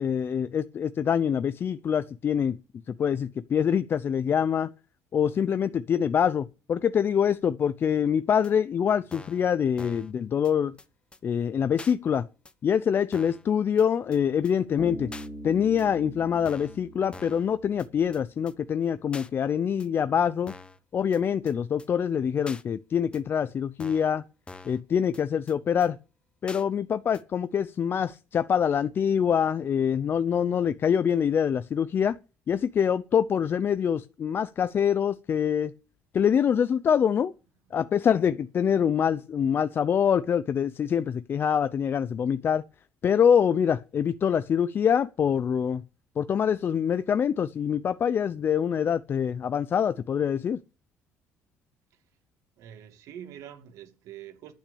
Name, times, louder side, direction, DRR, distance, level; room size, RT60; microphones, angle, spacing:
voice 1, 0.0-2.6 2.9-4.7 5.1-10.8 11.2-12.3 12.6-15.1 15.4-20.5 20.9-24.2 24.6-26.0 26.4-32.2 32.5-35.7 36.1-37.3 37.7-42.6 43.0-45.8 46.2-50.6, left 8 dB, 40° left, 0.6 m, -25 dB
sound 1, 8.4-8.5 9.1-9.4 9.8-10.1 10.4-10.5 10.8-10.9 11.1-11.2 11.8-11.9 12.4-12.5 13.1-13.4 13.8-13.9 14.1-14.2 14.4-14.5 15.1-15.3 15.8-15.9 16.4-16.8 17.1-17.5 17.8-17.9 18.1-18.2 18.5-18.6 19.1-19.3 19.8-19.9 20.5-20.8 21.1-21.2 21.5-21.6 21.8-21.9 22.5-22.6 23.1-23.2 23.8-24.1 24.5-24.8 25.1-25.2 25.5-25.6 25.8-25.9 26.5-26.6 27.1-27.2, left 3 dB, 20° left, 1.0 m, -45 dB
Bass guitar, 14.8-18.3, equal, ahead, 3.2 m, -42 dB
voice 2, 52.6-54.5, right 10 dB, 75° right, 2.3 m, -45 dB
11.5 x 6.0 x 8.5 m
cardioid pair, 105°, 6 cm